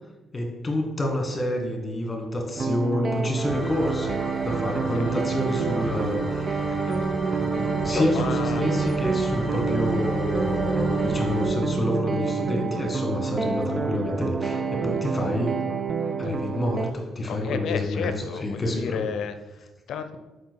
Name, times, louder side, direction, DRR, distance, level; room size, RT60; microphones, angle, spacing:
voice 1, 0.3-4.2 4.4-6.6 7.3-15.5 16.2-18.1 18.4-19.1, left 1 dB, 25° left, 2 dB, 1.7 m, -28 dB
sound 1, 2.6-16.9, right 5 dB, 40° right, 0.4 m, -27 dB
sound 2, 3.5-11.5, right 1 dB, 5° right, 1.6 m, -33 dB
voice 2, 6.7-7.0 7.8-8.7 16.0-16.4 17.2-20.2, left 7 dB, 75° left, 10 dB, 0.5 m, -33 dB
5.9 x 4.8 x 4.6 m, 1.1 s
cardioid pair, 90°, 0 cm